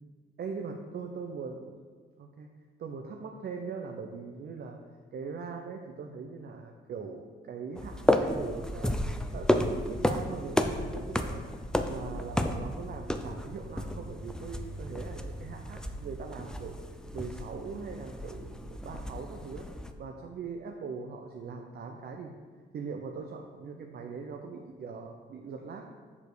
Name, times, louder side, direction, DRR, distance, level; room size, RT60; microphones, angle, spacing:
voice 1, 0.4-1.8 2.2-2.5 2.8-4.8 5.1-9.0 9.3-11.4 11.9-16.8 17.1-19.7 20.0-22.3 22.7-25.8, right 5 dB, 55° right, 3 dB, 0.6 m, -41 dB
sound 1, 7.8-19.9, left 1 dB, 5° left, 0.5 m, -32 dB
6.9 x 4.9 x 4.8 m, 1.5 s
cardioid pair, 90°, 20 cm